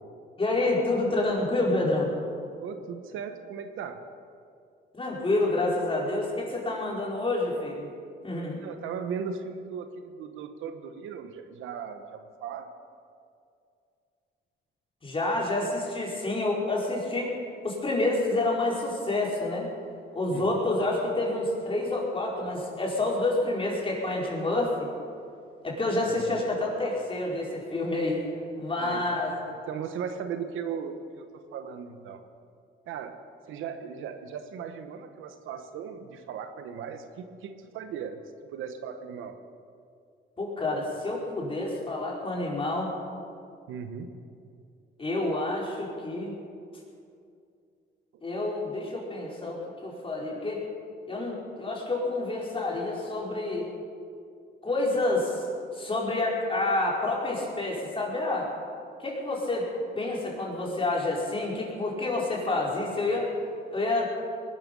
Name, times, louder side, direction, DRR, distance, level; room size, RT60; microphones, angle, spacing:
voice 1, 0.4-2.1 4.9-7.9 8.2-8.6 15.0-17.3 17.6-19.7 20.1-24.9 25.6-28.2 28.6-29.3 40.4-42.9 45.0-46.3 48.2-50.7 51.1-53.7 54.6-55.5 55.7-58.5 59.0-59.7 59.9-63.3 63.7-64.1, left 2 dB, 25° left, -3 dB, 4.9 m, -28 dB
voice 2, 2.6-4.0 8.6-12.7 20.3-20.7 26.3-26.4 28.8-31.3 31.5-32.2 32.9-39.4 43.7-44.2, right 7 dB, 85° right, 8 dB, 1.2 m, -38 dB
20.5 x 12.5 x 5.4 m, 2.4 s
cardioid pair, 90°, 20 cm